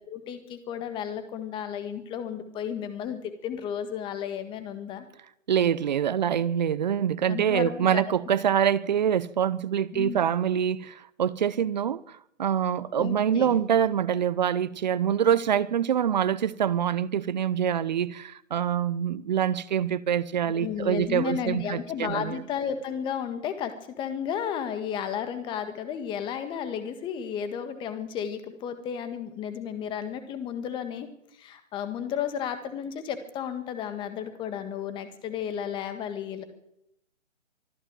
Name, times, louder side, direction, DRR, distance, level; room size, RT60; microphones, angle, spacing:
voice 1, 0.1-5.0 7.2-8.0 9.9-10.2 12.9-13.6 20.5-31.1 31.4-36.4, left 8 dB, 10° left, 1.6 m, -33 dB
voice 2, 5.5-22.4, right 9 dB, 35° right, 0.7 m, -25 dB
24.5 x 12.0 x 9.0 m
hypercardioid pair, 150°, 39 cm